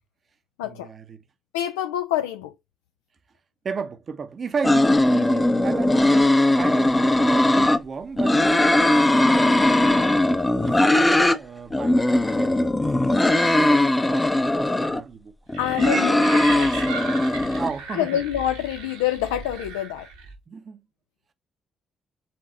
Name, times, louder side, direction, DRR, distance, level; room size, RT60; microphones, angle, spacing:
voice 1, 0.6-1.2 3.6-8.6 8.9-10.3 10.6-12.7 13.1-15.3 17.5-18.2 20.5-20.8, right 5 dB, 45° right, 0.7 m, -34 dB
voice 2, 1.5-2.5 15.6-16.8 17.9-20.1, left 11 dB, 75° left, 0.3 m, -27 dB
sound 1, 4.6-7.8 8.2-11.4 11.7-15.0 15.5-17.7, left 1 dB, 15° left, 0.6 m, -19 dB
sound 2, 15.5-20.4, right 4 dB, 75° right, 1.2 m, -35 dB
4.4 x 3.6 x 3.2 m
figure-of-eight pair, 40°, 0 cm